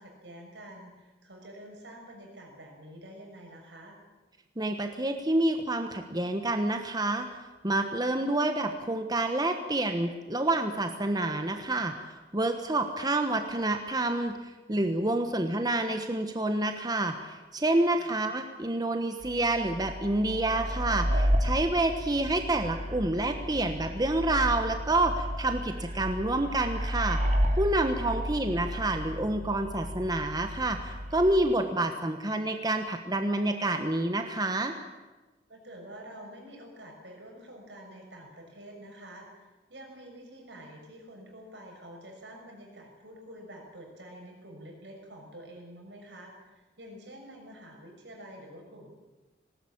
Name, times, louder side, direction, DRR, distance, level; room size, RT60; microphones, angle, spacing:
voice 1, 0.0-4.0 17.9-18.2 28.0-28.3 35.5-39.3 39.7-48.9, right 1 dB, 85° right, 1 dB, 6.5 m, -48 dB
voice 2, 4.6-7.3 7.6-11.9 12.3-14.4 14.7-27.2 27.6-34.7, right 2 dB, 25° right, 6 dB, 1.3 m, -28 dB
sound 1, 19.2-31.3, equal, 45° right, 3.4 m, -32 dB
19.5 x 18.0 x 8.8 m, 1.2 s
head